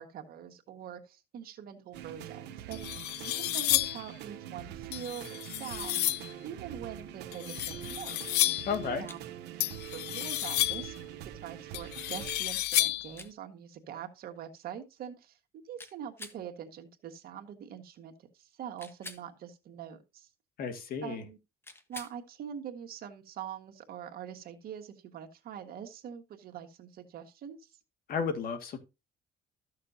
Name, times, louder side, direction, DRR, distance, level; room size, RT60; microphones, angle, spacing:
voice 1, 0.0-6.1 6.4-8.5 9.0-9.2 9.9-15.4 15.6-20.3 21.0-21.4 21.9-27.7, right 9 dB, 65° right, 1.6 m, -44 dB
sound 1, 1.9-12.4, right 11 dB, 85° right, 0.9 m, -44 dB
sound 2, 2.2-2.3 2.7-4.1 4.9-6.3 7.3-8.8 9.6-11.0 11.7-13.2, left 16 dB, 75° left, 0.5 m, -31 dB
voice 2, 8.7-9.1 20.6-21.2 28.1-28.8, left 6 dB, 60° left, 1.9 m, -33 dB
sound 3, 9.1-9.2 10.4-10.7 12.3-12.4 13.1-13.3 15.8-16.4 18.8-19.3 21.6-22.2 24.4-24.5, left 1 dB, 15° left, 1.2 m, -47 dB
13.5 x 6.6 x 2.7 m
cardioid pair, 110°, 17 cm